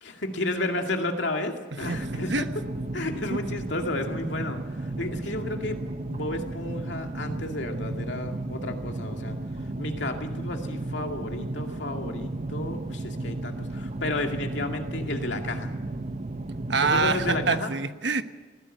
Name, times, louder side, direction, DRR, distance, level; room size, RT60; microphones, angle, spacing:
voice 1, 0.0-2.3 2.9-5.8 6.1-9.4 9.8-15.7 16.8-17.7, left 2 dB, 75° left, 3 dB, 2.3 m, -32 dB
sound 1, 1.8-17.6, right 2 dB, 35° right, 0.7 m, -34 dB
voice 2, 16.7-18.2, right 4 dB, 70° right, 9 dB, 1.1 m, -25 dB
19.5 x 15.5 x 9.0 m, 1.3 s
head